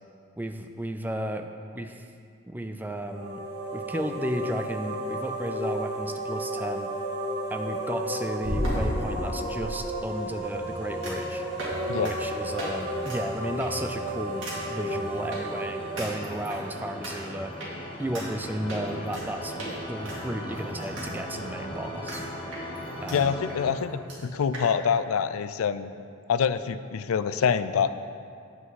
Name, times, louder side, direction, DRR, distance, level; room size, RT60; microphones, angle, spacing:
voice 1, 0.4-2.1 2.5-3.4 3.7-6.9 7.5-11.4 12.0-17.5 18.0-22.2 23.0-23.4, right 1 dB, 10° right, 6 dB, 0.3 m, -34 dB
sound 1, 2.9-17.6, equal, 40° right, 2.5 m, -33 dB
sound 2, 8.4-9.7 11.0-11.3 11.6-11.8 12.0-12.1 12.6-12.7 13.0-13.2 13.6-13.9 14.4-14.6 15.3-15.4 16.0-16.6 17.0-17.1 17.6-17.7 18.1-18.3 18.7-19.3 19.6-19.7 20.0-21.1 21.4-21.5 22.1-22.2 22.5-23.2 23.5-23.6 23.8-23.9 24.1-24.2 24.5-24.7, equal, 65° right, 2.4 m, -33 dB
sound 3, 9.4-23.7, equal, 25° left, 1.0 m, -40 dB
voice 2, 23.1-25.9 26.3-27.9, left 7 dB, 90° left, 13 dB, 0.4 m, -26 dB
9.2 x 8.0 x 4.1 m, 2.4 s
head